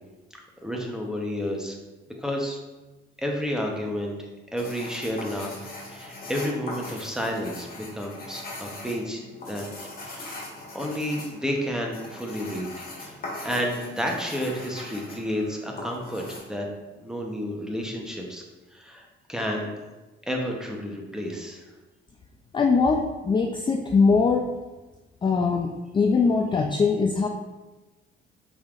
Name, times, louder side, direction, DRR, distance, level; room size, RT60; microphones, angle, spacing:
voice 1, 0.6-1.8 2.1-2.6 3.2-4.2 4.5-9.6 10.0-10.4 10.7-16.6 17.0-18.4 18.7-19.7 20.2-21.6, equal, 5° right, 0 dB, 0.8 m, -31 dB
sound 1, 4.6-16.4, left 2 dB, 50° left, 1.5 m, -40 dB
voice 2, 22.5-24.5 25.2-25.7 25.9-27.3, left 4 dB, 25° left, 2 dB, 0.3 m, -21 dB
5.3 x 3.5 x 2.5 m, 1.1 s
cardioid pair, 90°, 20 cm